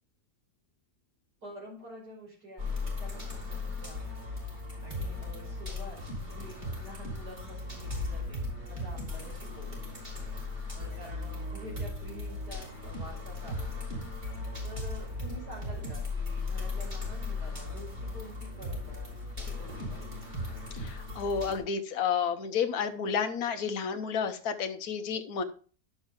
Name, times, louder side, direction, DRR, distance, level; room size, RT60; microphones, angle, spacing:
voice 1, 1.4-4.1 4.8-8.4 8.7-10.0 10.7-14.1 14.6-19.1 19.4-20.3, equal, 90° right, -4 dB, 6.2 m, -48 dB
sound 1, 2.6-21.6, left 2 dB, 30° right, 3.3 m, -37 dB
voice 2, 20.7-25.4, left 6 dB, 70° left, 7 dB, 1.3 m, -31 dB
11.0 x 7.0 x 3.6 m, 0.41 s
omnidirectional pair, 1.7 m